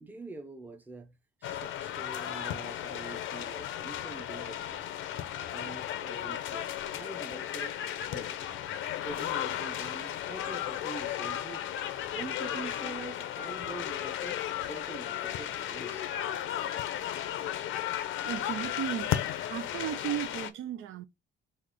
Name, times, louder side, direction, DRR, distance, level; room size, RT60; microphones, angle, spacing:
voice 1, 0.0-4.9 5.5-7.8 8.1-8.4 9.0-11.6 12.1-16.0, right 3 dB, 10° right, 0.6 m, -45 dB
sound 1, 1.4-20.5, left 11 dB, 90° left, 0.6 m, -35 dB
voice 2, 18.2-19.1 19.5-21.0, right 10 dB, 85° right, 0.6 m, -35 dB
4.1 x 2.4 x 4.8 m
cardioid pair, 160°, 20 cm